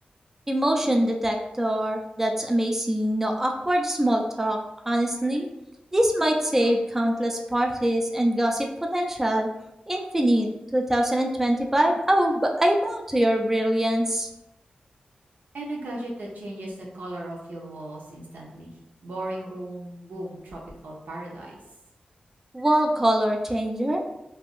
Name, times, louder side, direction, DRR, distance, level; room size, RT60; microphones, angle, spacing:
voice 1, 0.5-4.6 4.9-5.5 5.9-9.5 9.9-14.3 22.5-24.0, right 1 dB, 10° right, 2 dB, 0.3 m, -23 dB
voice 2, 15.5-18.7 19.0-21.6, right 1 dB, 80° right, -2 dB, 0.7 m, -36 dB
3.3 x 2.6 x 2.5 m, 0.90 s
wide cardioid pair, 85°, 3 cm